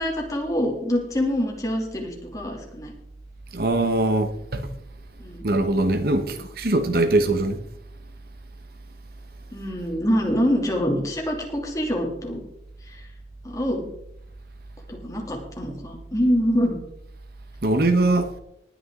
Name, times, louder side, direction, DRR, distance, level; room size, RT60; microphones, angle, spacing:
voice 1, 0.0-2.9 5.2-5.5 9.5-12.4 12.8-13.1 13.4-13.9 14.9-16.8, equal, 20° left, 2.8 m, -25 dB
voice 2, 3.5-4.6 5.4-7.6 17.6-18.3, right 2 dB, 55° right, 1.1 m, -21 dB
19.0 x 9.6 x 3.8 m
head